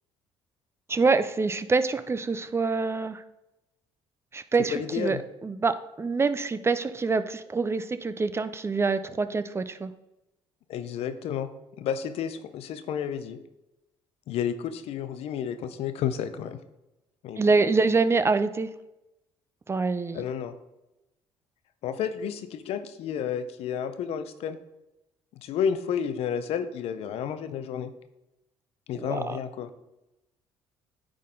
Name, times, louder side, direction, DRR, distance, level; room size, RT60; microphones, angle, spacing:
voice 1, 0.9-3.2 4.3-9.9 17.4-18.7 19.7-20.2 28.9-29.4, right 4 dB, 25° right, 12 dB, 0.4 m, -26 dB
voice 2, 4.7-5.2 10.7-11.5 11.8-13.4 14.3-16.6 17.2-17.5 20.1-20.6 21.8-24.6 25.4-27.9 28.9-29.7, left 8 dB, 70° left, 11 dB, 0.6 m, -31 dB
9.5 x 3.8 x 3.8 m, 0.96 s
supercardioid pair, 75°, 11 cm